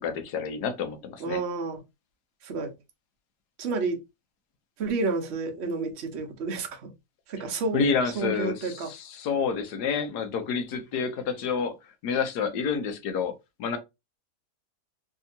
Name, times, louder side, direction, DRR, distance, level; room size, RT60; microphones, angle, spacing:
voice 1, 0.0-1.4 7.7-11.8 12.0-13.3 13.6-13.8, left 5 dB, 85° left, 1.3 m, -28 dB
voice 2, 1.2-1.8 2.4-2.7 3.6-4.0 4.8-6.9 7.3-7.8 8.1-8.9, right 3 dB, 50° right, 0.9 m, -30 dB
3.4 x 2.8 x 2.7 m
omnidirectional pair, 1.7 m